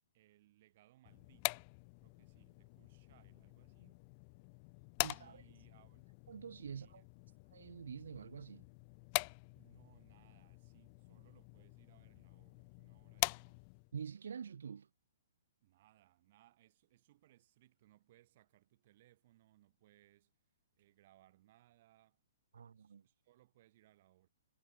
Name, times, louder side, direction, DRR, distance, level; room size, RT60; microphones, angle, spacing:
voice 1, 0.1-1.7 2.0-4.1 5.0-6.1 6.7-7.1 9.5-13.8 15.6-20.3 20.8-22.2 22.7-24.3, right 15 dB, 45° right, 7.4 m, -69 dB
sound 1, 1.1-13.9, left 33 dB, 30° left, 0.4 m, -44 dB
voice 2, 5.0-5.4 6.3-7.0 7.5-8.7 13.9-14.9 22.5-23.0, right 7 dB, 80° right, 0.4 m, -47 dB
hypercardioid pair, 160°, 0 cm